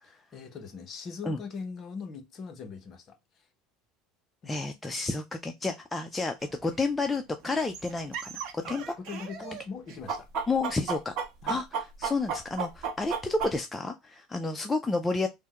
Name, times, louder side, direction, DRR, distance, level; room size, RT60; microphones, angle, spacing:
voice 1, 0.3-3.4 4.4-4.6 8.6-10.3 11.4-11.6, left 5 dB, 35° left, 0.8 m, -41 dB
voice 2, 4.5-6.3 6.6-8.8 10.5-11.2 11.5-15.3, left 3 dB, 10° left, 0.3 m, -30 dB
sound 1, 6.5-6.6 7.1-7.2 7.5-9.6 9.9-13.6, right 6 dB, 60° right, 0.8 m, -33 dB
3.4 x 2.1 x 2.8 m
supercardioid pair, 135°, 0 cm